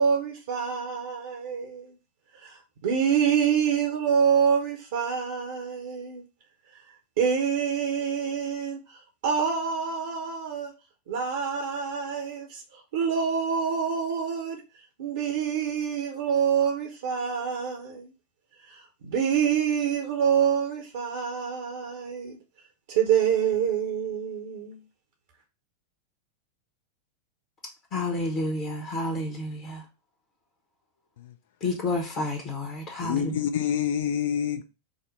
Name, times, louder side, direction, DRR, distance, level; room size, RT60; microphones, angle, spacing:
voice 1, 0.0-1.9 2.3-6.2 7.2-10.7 11.1-14.6 15.0-18.1 18.7-22.4 22.9-24.8, right 7 dB, 55° right, 0.8 m, -26 dB
voice 2, 27.9-29.8 31.6-33.3, left 2 dB, 35° left, 1.0 m, -30 dB
voice 3, 33.0-34.6, left 9 dB, 55° left, 0.4 m, -27 dB
4.9 x 2.1 x 4.0 m
figure-of-eight pair, 90°, 0 cm